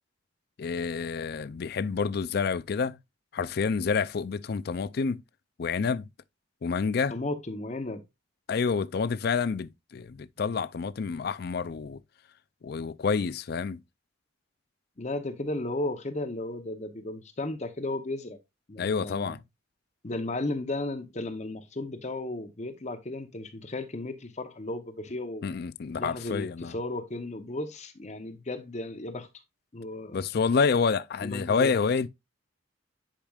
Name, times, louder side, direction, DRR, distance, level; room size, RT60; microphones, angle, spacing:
voice 1, 0.6-3.0 3.3-5.2 5.6-6.1 6.6-7.2 8.5-12.0 12.6-13.8 18.8-19.4 25.4-26.7 30.1-32.1, left 5 dB, 55° left, 0.4 m, -28 dB
voice 2, 7.1-8.0 15.0-18.4 18.7-19.4 20.0-25.5 26.0-29.3 29.7-30.2 31.2-31.7, left 2 dB, 35° left, 0.8 m, -34 dB
10.5 x 5.0 x 2.4 m
head